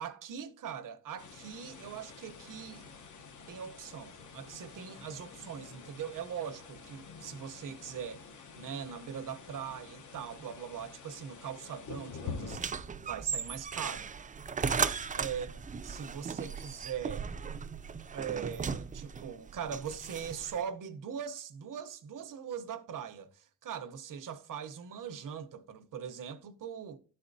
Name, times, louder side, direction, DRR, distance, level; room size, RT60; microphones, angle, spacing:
voice 1, 0.0-2.9 3.5-8.3 8.6-14.1 15.2-15.5 15.8-17.3 18.1-27.0, right 8 dB, 85° right, 0.8 m, -41 dB
sound 1, 1.2-12.6, left 5 dB, 70° left, 0.9 m, -48 dB
sound 2, 12.5-20.6, right 6 dB, 25° right, 0.3 m, -36 dB
12.5 x 4.3 x 2.6 m
wide cardioid pair, 175°, 31 cm